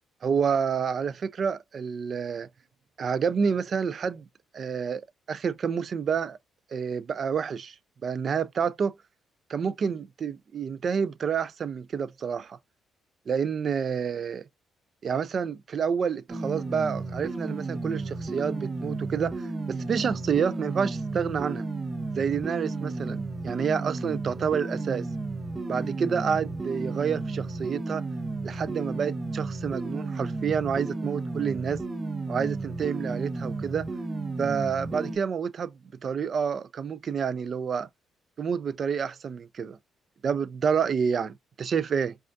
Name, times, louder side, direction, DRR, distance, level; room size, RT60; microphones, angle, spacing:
voice 1, 0.2-2.5 3.0-4.3 4.5-6.4 6.7-7.8 8.0-9.0 9.5-12.6 13.3-14.4 15.0-21.7 22.2-25.1 25.7-28.0 28.4-31.8 32.3-33.9 34.4-35.7 36.0-37.9 38.4-39.8 40.2-42.2, right 6 dB, 50° right, 0.4 m, -28 dB
sound 1, 16.3-35.2, right 3 dB, 35° right, 0.8 m, -33 dB
5.0 x 2.4 x 2.5 m
cardioid pair, 90°, 0 cm